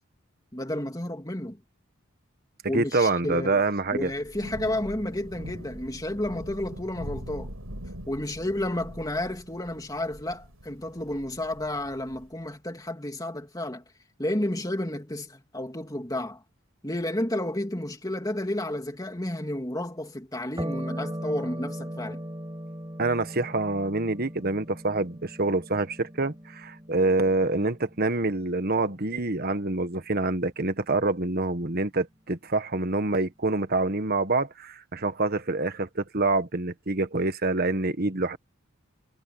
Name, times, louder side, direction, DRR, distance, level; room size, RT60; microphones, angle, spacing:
voice 1, 0.5-1.6 2.7-3.6 3.9-7.5 8.1-13.8 14.2-16.4 16.8-22.2, left 1 dB, 15° left, 2.8 m, -31 dB
voice 2, 2.7-4.1 23.0-38.4, right 2 dB, 45° right, 1.5 m, -26 dB
Thunder / Rain, 3.8-12.4, equal, 80° right, 7.4 m, -43 dB
sound 1, 20.6-29.4, equal, 20° right, 6.5 m, -39 dB
head